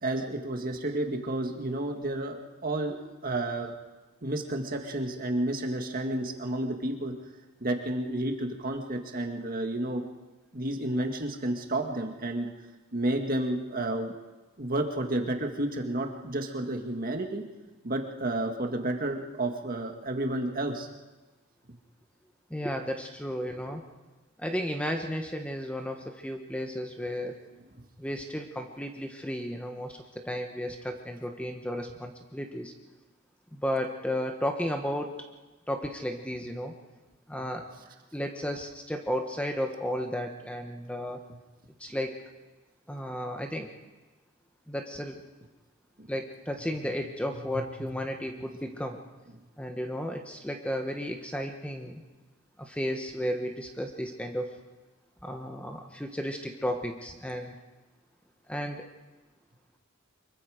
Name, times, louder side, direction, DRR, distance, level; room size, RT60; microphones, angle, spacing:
voice 1, 0.0-3.0 3.2-3.7 4.2-7.1 7.6-10.0 10.5-12.5 12.9-14.1 14.6-17.4 17.8-20.9 46.0-46.1 47.5-47.6, right 1 dB, 40° right, 4 dB, 1.9 m, -31 dB
voice 2, 22.5-23.8 24.4-27.4 28.0-32.7 33.5-35.1 35.7-36.7 37.3-37.7 38.1-41.2 41.8-42.1 42.9-43.7 44.7-45.2 46.1-49.0 49.6-52.0 52.6-54.5 55.2-57.5 58.5-58.9, equal, 5° left, 4 dB, 1.1 m, -33 dB
24.5 x 22.5 x 5.0 m, 1.2 s
head